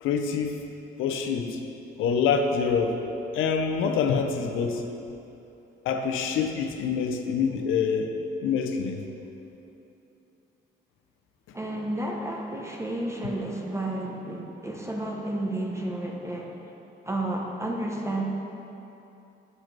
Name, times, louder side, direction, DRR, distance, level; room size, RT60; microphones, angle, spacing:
voice 1, 0.0-0.5 1.0-1.6 2.0-3.0 3.3-4.8 5.9-8.1 8.4-9.0, left 6 dB, 85° left, 5 dB, 0.6 m, -26 dB
voice 2, 11.5-16.6 17.1-18.2, right 1 dB, 15° right, 0 dB, 0.7 m, -31 dB
7.6 x 4.9 x 4.5 m, 2.9 s
cardioid pair, 90°, 20 cm